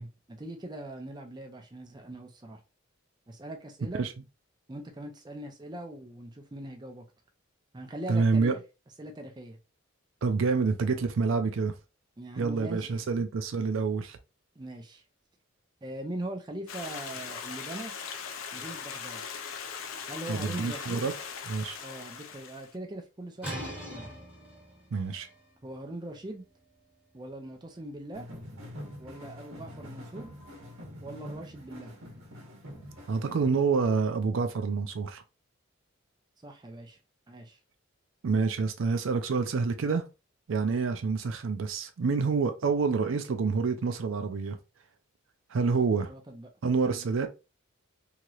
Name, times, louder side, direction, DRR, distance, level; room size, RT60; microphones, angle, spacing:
voice 1, 0.0-2.6 3.3-4.0 4.7-7.0 7.7-8.6 9.0-9.6 12.2-13.2 14.6-15.0 15.8-17.9 18.5-19.2 20.1-21.1 21.8-24.1 25.6-26.4 27.1-28.3 29.0-30.3 31.0-31.9 36.4-37.0 37.3-37.6 45.6-46.5, right 1 dB, 20° right, 0.5 m, -41 dB
voice 2, 8.1-8.5 10.2-11.7 12.4-14.2 20.3-21.1 21.5-21.8 24.9-25.3 33.1-35.2 38.2-40.0 40.5-44.6 45.5-46.1 46.6-47.3, right 4 dB, 75° right, 0.4 m, -27 dB
Stream, 16.7-22.8, left 6 dB, 75° left, 0.4 m, -40 dB
sound 1, 23.4-29.0, equal, 5° right, 1.2 m, -44 dB
sound 2, 28.1-33.5, equal, 90° right, 1.1 m, -45 dB
3.0 x 2.9 x 2.4 m
head